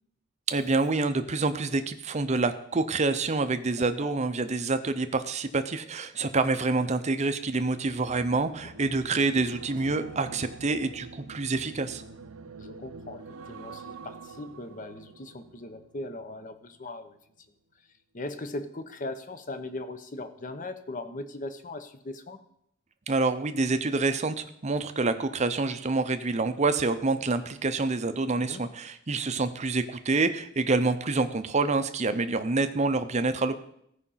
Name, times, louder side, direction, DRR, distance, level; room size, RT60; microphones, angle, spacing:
voice 1, 0.5-12.0 23.1-33.6, right 3 dB, 30° right, 10 dB, 0.6 m, -27 dB
sound 1, 7.4-16.8 17.1-17.4, right 4 dB, 75° right, 0.6 m, -46 dB
voice 2, 12.6-13.2 13.5-17.2 18.1-22.4 28.3-28.6, left 2 dB, 35° left, 10 dB, 0.8 m, -39 dB
15.0 x 5.0 x 5.6 m, 0.73 s
head